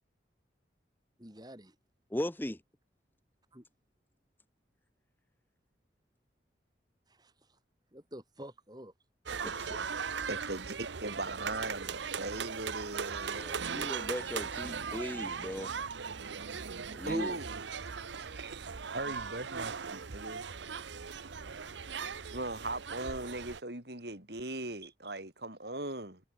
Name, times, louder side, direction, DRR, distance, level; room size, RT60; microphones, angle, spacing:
voice 1, 1.2-1.8 3.5-3.6 7.1-7.6 7.9-8.9 24.8-24.9, right 1 dB, 20° right, 4.6 m, -49 dB
voice 2, 2.1-2.6 9.4-9.9 13.3-15.7 16.9-17.4, left 1 dB, 10° left, 0.7 m, -38 dB
sound 1, 9.3-23.6, right 6 dB, 75° right, 0.9 m, -39 dB
voice 3, 10.3-13.8 17.1-17.6 18.2-20.5 22.3-26.2, right 2 dB, 60° right, 4.8 m, -39 dB
head